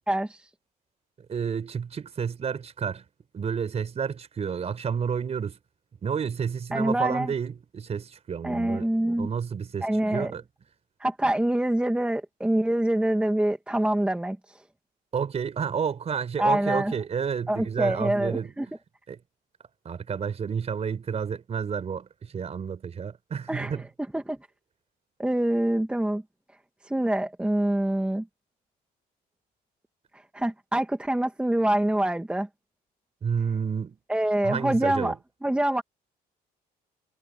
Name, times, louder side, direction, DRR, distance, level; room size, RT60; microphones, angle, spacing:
voice 1, 0.1-0.5 6.7-7.3 8.4-9.3 9.8-10.3 11.0-14.6 16.4-16.9 17.5-18.7 23.5-23.7 24.1-24.4 25.2-26.2 26.8-28.3 30.1-32.5 34.1-35.1 35.4-35.8, right 1 dB, 5° right, 1.7 m, -25 dB
voice 2, 1.3-3.0 3.3-5.6 6.0-8.9 9.2-10.4 15.1-18.5 19.1-19.2 19.8-23.8 33.2-34.0 34.4-35.2, right 6 dB, 40° right, 4.5 m, -30 dB
cardioid pair, 110°, 17 cm